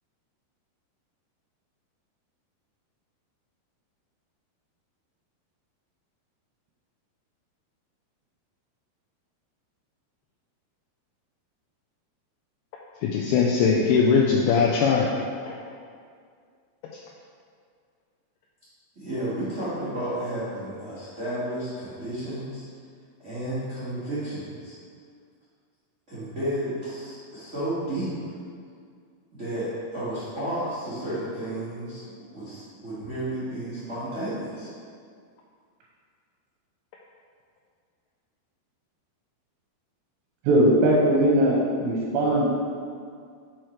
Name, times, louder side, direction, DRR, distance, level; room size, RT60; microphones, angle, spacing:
voice 1, 13.0-15.1 15.5-15.6, left 5 dB, 80° left, -2 dB, 2.4 m, -21 dB
voice 2, 18.9-22.6 23.2-24.7 26.1-28.1 29.3-34.7, right 1 dB, 60° right, -13 dB, 0.7 m, -32 dB
voice 3, 40.5-42.4, right 1 dB, 80° right, -4 dB, 2.5 m, -20 dB
6.3 x 4.7 x 4.5 m, 2.1 s
omnidirectional pair, 4.6 m